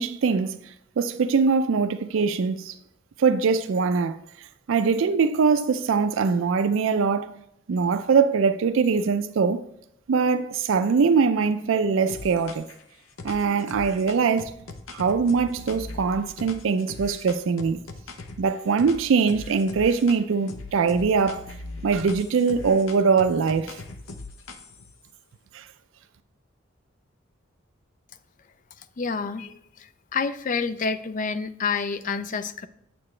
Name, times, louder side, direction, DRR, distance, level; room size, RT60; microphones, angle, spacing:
voice 1, 0.0-2.8 3.2-7.3 7.7-9.6 10.1-12.6 13.2-14.5 14.9-17.9 18.4-21.4 21.8-23.8 25.5-25.7, right 5 dB, 70° right, 0.4 m, -22 dB
sound 1, 12.1-12.8 13.2-18.4 18.8-20.2 20.5-24.9, left 3 dB, 80° left, 0.7 m, -40 dB
voice 2, 28.8-32.7, left 5 dB, 40° left, 0.3 m, -29 dB
7.6 x 6.8 x 3.2 m
head